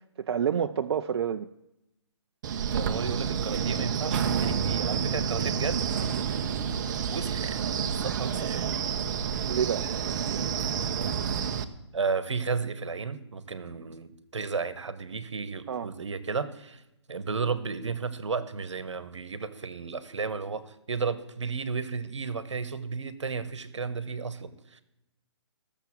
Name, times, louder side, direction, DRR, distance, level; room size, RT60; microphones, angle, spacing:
voice 1, 0.2-1.5 9.4-9.9 15.7-15.9, right 8 dB, 55° right, 8 dB, 0.5 m, -28 dB
Wind, 2.4-11.6, right 7 dB, 40° right, 0.9 m, -29 dB
voice 2, 2.7-6.0 7.1-7.6 8.0-8.7 11.9-16.8 17.1-24.8, right 5 dB, 80° right, 14 dB, 1.2 m, -33 dB
14.5 x 7.0 x 7.3 m, 0.89 s
hypercardioid pair, 145°, 15 cm